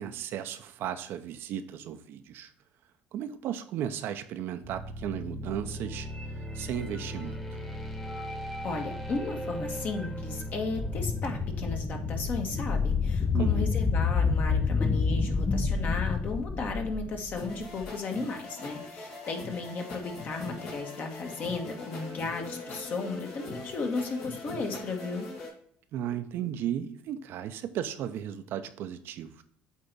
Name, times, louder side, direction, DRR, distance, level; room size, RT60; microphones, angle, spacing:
voice 1, 0.0-2.5 3.1-6.1 6.5-7.6 13.3-13.7 25.9-29.4, right 10 dB, 65° right, 9 dB, 0.7 m, -35 dB
sound 1, 4.6-15.5, equal, 5° left, 1.2 m, -38 dB
voice 2, 8.6-25.3, left 3 dB, 50° left, 3 dB, 1.5 m, -35 dB
sound 2, 10.8-17.9, left 5 dB, 30° left, 0.5 m, -28 dB
sound 3, 17.4-25.5, left 2 dB, 75° left, 2.6 m, -42 dB
8.2 x 3.5 x 4.1 m, 0.63 s
supercardioid pair, 90°, 4 cm